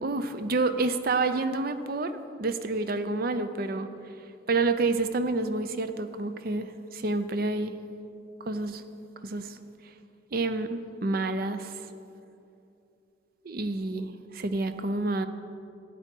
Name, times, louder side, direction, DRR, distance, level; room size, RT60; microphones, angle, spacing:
voice 1, 0.0-7.8 8.4-8.8 9.2-9.9 10.3-11.9 13.4-15.3, right 3 dB, 50° right, 10 dB, 0.5 m, -29 dB
13.0 x 9.1 x 4.5 m, 2.7 s
head